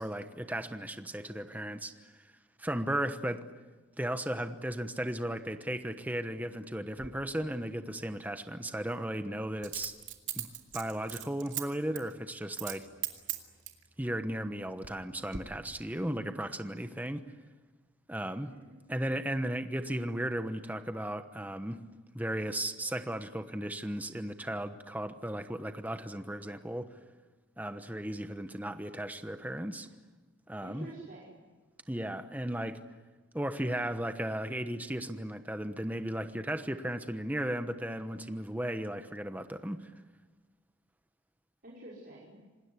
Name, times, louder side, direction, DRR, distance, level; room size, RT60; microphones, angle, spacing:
voice 1, 0.0-1.9 2.6-3.4 4.0-9.9 10.3-10.5 10.7-12.9 14.0-17.2 18.1-18.5 18.9-21.8 22.1-26.9 27.6-29.9 30.5-30.9 31.9-32.8 33.3-39.9, right 1 dB, 10° right, 8 dB, 1.1 m, -35 dB
Coin (dropping), 7.0-7.1 9.6-11.6 12.0-12.1 12.5-12.8 13.0-13.8 14.5-15.0 15.3-15.4, right 12 dB, 65° right, 2.6 m, -38 dB
voice 2, 18.3-18.8 30.6-31.4 41.6-42.4, right 1 dB, 45° right, -6 dB, 5.4 m, -49 dB
27.0 x 20.0 x 9.8 m, 1.3 s
head